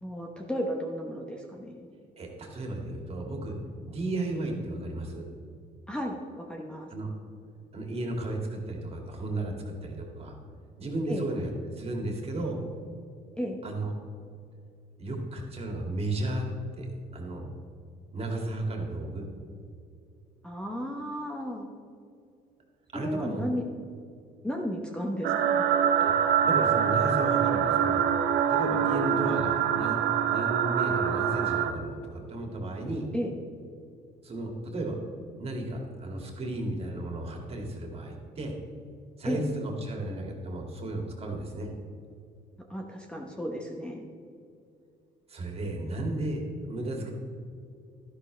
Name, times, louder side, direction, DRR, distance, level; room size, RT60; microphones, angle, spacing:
voice 1, 0.0-1.9 5.9-6.9 11.1-11.3 13.4-13.6 20.4-21.7 22.9-23.6 24.4-25.7 33.1-33.3 39.2-39.4 42.7-44.1, equal, 5° left, 0 dB, 1.1 m, -34 dB
voice 2, 2.2-3.5 3.8-5.3 6.9-7.1 7.7-10.3 10.8-12.6 13.6-13.9 15.0-16.5 16.8-16.9 17.1-17.5 18.1-19.3 22.9-23.4 26.0-28.0 28.5-33.1 34.2-35.0 35.4-38.5 39.2-41.7 45.3-47.1, right 2 dB, 35° right, 1 dB, 2.4 m, -34 dB
sound 1, 25.2-31.7, right 8 dB, 80° right, 0.9 m, -25 dB
12.5 x 11.5 x 3.4 m, 2.4 s
cardioid pair, 110°, 17 cm